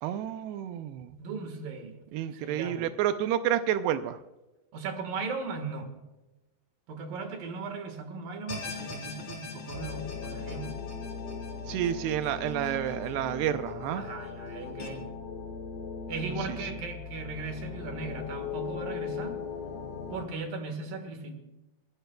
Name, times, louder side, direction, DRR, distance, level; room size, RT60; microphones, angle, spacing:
voice 1, 0.0-1.2 2.1-4.2 11.7-14.0 16.5-16.6, right 11 dB, 80° right, 10 dB, 2.4 m, -30 dB
voice 2, 1.2-2.0 2.3-2.9 4.7-5.9 6.9-10.8 13.9-15.1 16.1-19.3 20.1-21.4, right 4 dB, 60° right, 7 dB, 2.7 m, -37 dB
sound 1, 8.5-13.7 14.1-14.2 14.8-14.9, left 4 dB, 45° left, 4.1 m, -43 dB
sound 2, 9.7-20.3, left 5 dB, 60° left, 3.5 m, -39 dB
23.5 x 16.0 x 2.3 m, 1.0 s
omnidirectional pair, 5.3 m